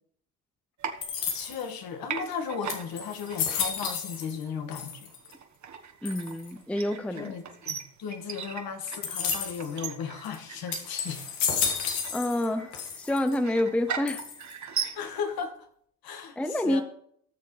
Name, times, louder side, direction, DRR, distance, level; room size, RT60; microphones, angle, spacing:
sound 1, 0.8-1.8 2.1-15.4, right 7 dB, 40° right, 1.4 m, -39 dB
sound 2, 1.0-1.7 2.3-2.4 2.7-4.4 4.7-5.3 6.0-6.5 9.0-9.7 10.2-10.4 10.7-12.5 12.7-13.4 14.1-14.6, left 7 dB, 75° left, 2.2 m, -32 dB
voice 1, 1.3-5.1 7.1-11.2 14.9-15.5 16.0-16.8, left 6 dB, 55° left, 6 dB, 1.9 m, -35 dB
voice 2, 6.0-7.3 12.1-14.2 16.4-16.8, left 1 dB, 5° left, 9 dB, 0.7 m, -28 dB
18.0 x 6.7 x 3.3 m, 0.66 s
hypercardioid pair, 70°, 43 cm